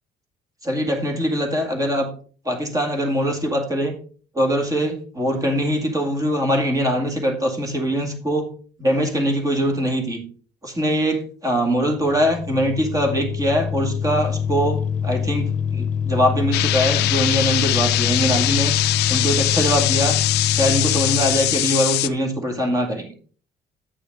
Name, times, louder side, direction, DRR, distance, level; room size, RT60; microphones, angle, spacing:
voice 1, 0.6-2.1 2.4-3.9 4.3-8.5 8.8-10.2 10.6-20.2 20.5-23.1, equal, 20° right, 2 dB, 2.0 m, -22 dB
sound 1, 11.9-21.8, left 7 dB, 50° left, 0.8 m, -25 dB
sound 2, 16.5-22.1, left 17 dB, 80° left, 0.5 m, -22 dB
9.1 x 6.7 x 3.7 m, 0.42 s
cardioid pair, 110°, 17 cm